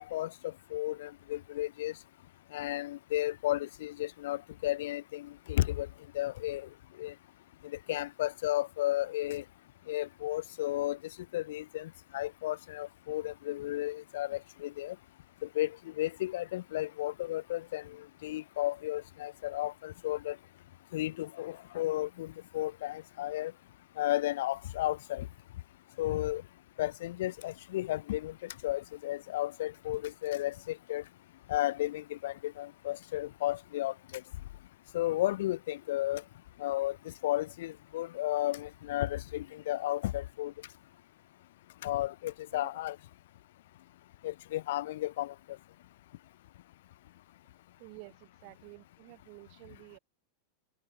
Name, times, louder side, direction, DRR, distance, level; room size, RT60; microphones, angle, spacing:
voice 1, 0.0-1.9 2.5-5.9 6.1-6.7 7.0-7.1 7.9-9.4 9.9-11.0 11.3-14.9 15.5-18.0 18.2-20.4 20.9-23.5 24.0-25.3 26.0-26.4 26.8-31.0 31.5-33.9 34.9-36.2 36.6-37.0 37.2-40.5 41.8-43.0 44.2-45.3, left 15 dB, 55° left, 1.2 m, -33 dB
voice 2, 47.8-50.0, right 40 dB or more, 45° right, 1.1 m, -51 dB
figure-of-eight pair, 90°, 0 cm